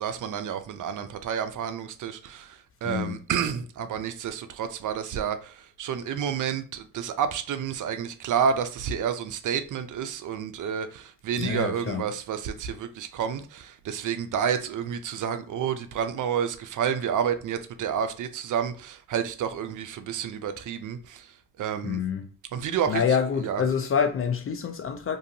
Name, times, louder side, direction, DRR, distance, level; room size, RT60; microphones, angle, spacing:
voice 1, 0.0-22.0 22.5-23.0 23.4-23.6, right 8 dB, 50° right, 0.5 m, -30 dB
voice 2, 2.8-3.2 11.4-12.1 21.8-22.3 22.9-25.2, left 7 dB, 35° left, 0.4 m, -27 dB
2.6 x 2.5 x 2.7 m
hypercardioid pair, 55°, 41 cm